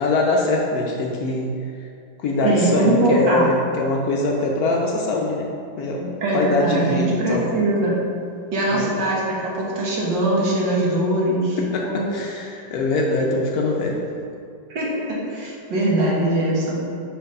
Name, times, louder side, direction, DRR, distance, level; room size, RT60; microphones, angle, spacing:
voice 1, 0.0-1.5 2.2-5.5 5.8-7.5 8.7-8.9 11.6-14.0, left 2 dB, 70° left, -1 dB, 1.0 m, -23 dB
voice 2, 2.4-3.5 6.2-7.9 8.5-12.1 14.7-16.8, right 1 dB, 85° right, -4 dB, 1.9 m, -21 dB
4.5 x 4.0 x 5.2 m, 2.4 s
omnidirectional pair, 1.9 m